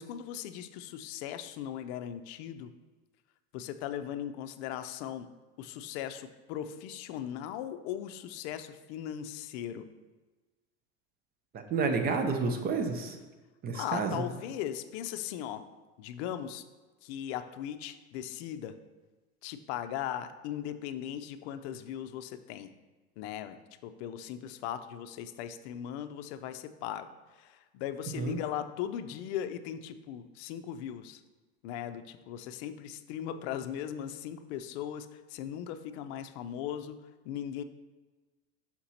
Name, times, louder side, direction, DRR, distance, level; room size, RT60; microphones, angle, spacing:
voice 1, 0.0-2.7 3.5-5.3 5.6-9.9 13.7-15.6 16.0-16.6 17.0-18.8 19.4-22.7 23.2-31.2 31.6-37.0 37.2-37.6, left 10 dB, 70° left, 9 dB, 0.5 m, -38 dB
voice 2, 11.5-13.2 13.6-14.2 28.2-28.4, right 4 dB, 25° right, 6 dB, 0.6 m, -30 dB
5.9 x 4.4 x 4.1 m, 1.2 s
supercardioid pair, 140°, 34 cm